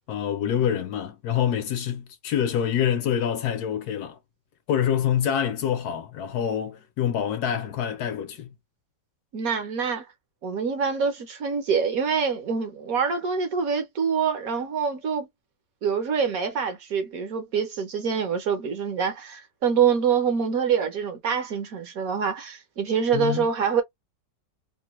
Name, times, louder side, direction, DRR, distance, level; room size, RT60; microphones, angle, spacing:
voice 1, 0.1-4.2 4.7-8.5 23.1-23.5, left 9 dB, 70° left, 1.0 m, -26 dB
voice 2, 9.3-10.1 10.4-15.3 15.8-23.8, right 6 dB, 65° right, 1.0 m, -25 dB
3.0 x 2.1 x 2.9 m
omnidirectional pair, 1.9 m